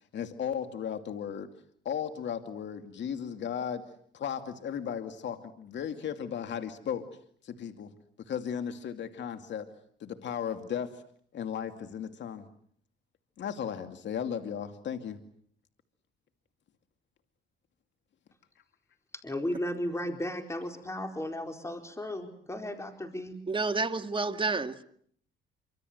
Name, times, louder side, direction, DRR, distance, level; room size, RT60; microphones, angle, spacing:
voice 1, 0.1-1.5 1.8-3.8 4.1-7.1 7.4-7.9 8.3-9.7 10.0-11.0 11.3-12.5 13.4-15.2, left 8 dB, 65° left, 7 dB, 2.5 m, -35 dB
voice 2, 19.1-23.4, left 1 dB, 15° left, 5 dB, 4.4 m, -35 dB
voice 3, 23.5-24.8, right 3 dB, 25° right, 8 dB, 2.1 m, -29 dB
27.0 x 25.5 x 8.1 m, 0.62 s
cardioid pair, 90°, 20 cm